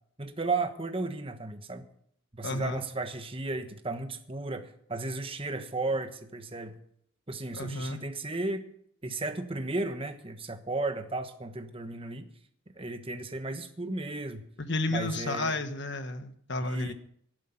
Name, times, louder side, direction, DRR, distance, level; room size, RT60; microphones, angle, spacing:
voice 1, 0.2-1.8 2.3-6.8 7.3-8.6 9.0-12.3 12.8-14.5 14.9-15.6 16.6-16.9, right 3 dB, 25° right, 1.2 m, -34 dB
voice 2, 2.4-2.8 7.5-8.0 14.6-16.9, left 2 dB, 55° left, 1.3 m, -32 dB
13.0 x 11.5 x 5.8 m
head